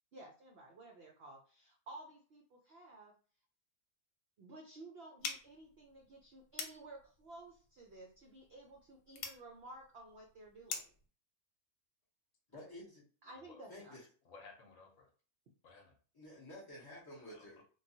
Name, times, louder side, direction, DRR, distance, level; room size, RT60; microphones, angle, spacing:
voice 1, 0.1-3.1 4.4-10.9 13.2-14.0, right 2 dB, 75° right, 0 dB, 0.5 m, -54 dB
sound 1, 5.2-11.1, left 5 dB, 90° left, 1.2 m, -47 dB
voice 2, 12.5-13.0 13.7-14.1 16.1-17.6, left 1 dB, 35° left, -8 dB, 0.3 m, -51 dB
voice 3, 13.3-13.7 14.2-15.1 15.6-15.9 17.2-17.6, left 4 dB, 65° left, 2 dB, 1.0 m, -58 dB
3.1 x 2.2 x 2.7 m, 0.40 s
omnidirectional pair, 1.7 m